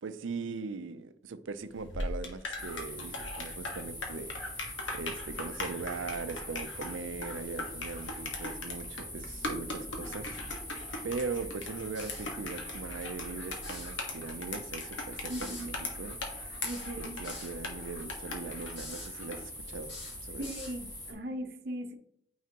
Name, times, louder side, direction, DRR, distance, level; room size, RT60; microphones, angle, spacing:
voice 1, 0.0-4.3 4.9-10.3 10.7-16.2 17.0-20.0 20.2-20.4, right 4 dB, 90° right, 0.5 m, -40 dB
sound 1, 1.7-19.5, left 2 dB, 85° left, 1.5 m, -40 dB
sound 2, 2.6-21.1, left 1 dB, 20° left, 1.7 m, -43 dB
sound 3, 11.9-12.3 13.5-13.9 15.3-15.7 16.6-17.5 18.7-19.1 19.8-20.8, left 3 dB, 65° left, 3.0 m, -46 dB
voice 2, 15.3-15.7 16.6-17.2 20.4-21.9, right 1 dB, 55° right, 0.7 m, -38 dB
9.2 x 4.8 x 2.9 m
head